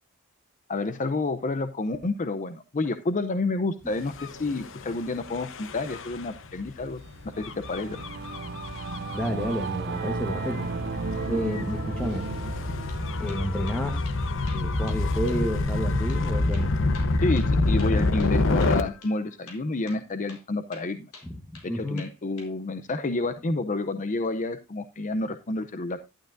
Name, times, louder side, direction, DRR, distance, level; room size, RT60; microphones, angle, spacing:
voice 1, 0.7-7.0 7.4-8.0 17.2-21.1 21.6-26.0, left 3 dB, 35° left, 10 dB, 0.6 m, -29 dB
Gull seagull / Waves surf / Siren, 4.1-18.8, left 2 dB, 60° left, 0.9 m, -28 dB
Singing / Musical instrument, 7.1-16.8, right 5 dB, 50° right, 0.5 m, -36 dB
voice 2, 9.1-10.7 11.3-12.3 13.2-14.1 14.5-16.7 21.2-21.4 21.6-22.1, equal, 5° left, 4 dB, 1.2 m, -30 dB
sound 1, 12.9-13.0 13.3-13.8 14.0-14.2 14.5-15.0 15.3-15.4 15.7-15.8 16.1-16.2 16.5-18.3 18.6-18.8 19.0-19.1 19.5-20.4 20.7-21.7 22.0-22.5, left 3 dB, 75° left, 4.3 m, -48 dB
11.5 x 11.5 x 2.6 m, 0.25 s
head